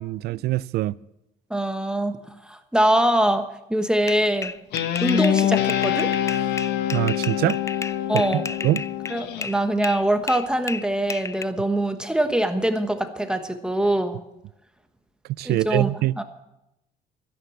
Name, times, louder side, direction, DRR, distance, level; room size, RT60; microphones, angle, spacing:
voice 1, 0.0-0.9 6.9-7.6 8.1-8.2 8.6-8.8 15.4-16.1, right 16 dB, 70° right, 0.5 m, -23 dB
voice 2, 1.5-2.2 2.5-3.4 3.7-4.5 5.0-6.1 8.1-8.5 9.1-14.2 15.4-15.9 16.2-16.3, right 1 dB, 5° right, 1.2 m, -23 dB
sound 1, 4.1-9.6 9.8-11.4, left 4 dB, 15° left, 0.4 m, -33 dB
Guitar, 4.7-9.5, left 10 dB, 75° left, 1.1 m, -25 dB
13.0 x 11.0 x 7.2 m
cardioid pair, 110°, 17 cm